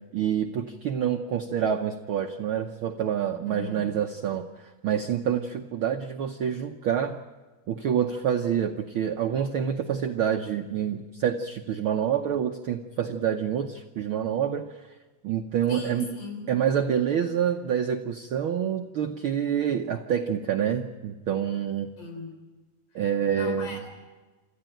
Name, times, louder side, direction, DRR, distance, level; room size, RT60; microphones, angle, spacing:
voice 1, 0.1-7.2 7.7-14.9 15.2-16.1 16.5-21.9 22.9-23.8, right 8 dB, 75° right, 5 dB, 1.2 m, -27 dB
voice 2, 3.5-3.9 15.7-16.5 22.0-22.3 23.3-23.9, left 2 dB, 85° left, 4 dB, 5.6 m, -37 dB
27.0 x 14.0 x 9.1 m, 1.3 s
omnidirectional pair, 3.5 m